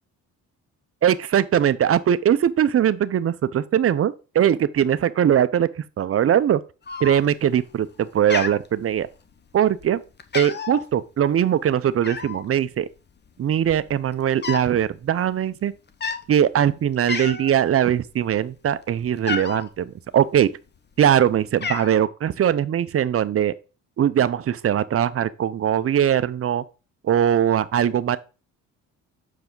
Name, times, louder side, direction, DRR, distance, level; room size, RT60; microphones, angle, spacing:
voice 1, 1.0-5.7 6.0-6.6 7.0-9.1 9.5-10.0 10.3-12.9 13.4-15.7 16.3-20.5 21.0-23.5 24.0-26.6 27.0-28.2, right 9 dB, 40° right, 0.6 m, -21 dB
Cat, 6.9-7.5 7.8-8.0 8.3-9.3 9.8-9.9 10.2-10.8 12.0-12.5 13.3-13.4 13.6-14.7 15.0-15.3 15.9-16.2 16.7-16.8 17.1-17.6 18.0-19.7 20.5-21.1 21.3-22.0, left 5 dB, 30° left, 0.9 m, -31 dB
6.9 x 4.8 x 3.8 m
supercardioid pair, 70°, 37 cm